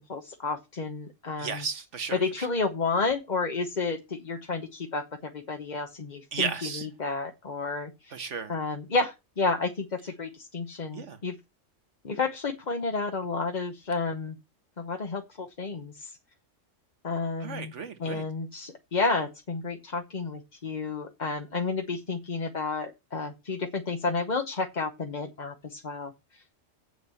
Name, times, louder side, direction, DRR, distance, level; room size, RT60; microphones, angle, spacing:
voice 1, 0.0-1.6 2.1-6.5 6.8-8.2 8.5-11.4 12.0-14.4 14.8-16.2 17.0-17.7 18.0-26.1, left 4 dB, 40° left, 1.1 m, -31 dB
voice 2, 1.4-2.5 6.3-6.9 8.1-8.5 10.9-11.2 17.4-18.2, right 5 dB, 70° right, 1.6 m, -34 dB
8.0 x 6.3 x 6.9 m
omnidirectional pair, 1.3 m